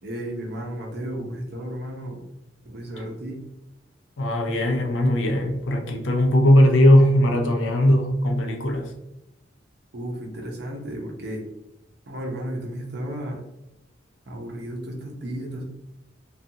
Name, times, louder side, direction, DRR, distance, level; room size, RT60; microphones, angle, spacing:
voice 1, 0.0-2.2 2.6-3.4 9.9-11.4 12.1-13.4 14.3-15.6, right 1 dB, 55° right, 0 dB, 0.7 m, -33 dB
voice 2, 4.2-8.9, equal, 80° left, 2 dB, 0.5 m, -19 dB
2.4 x 2.3 x 2.7 m, 0.93 s
head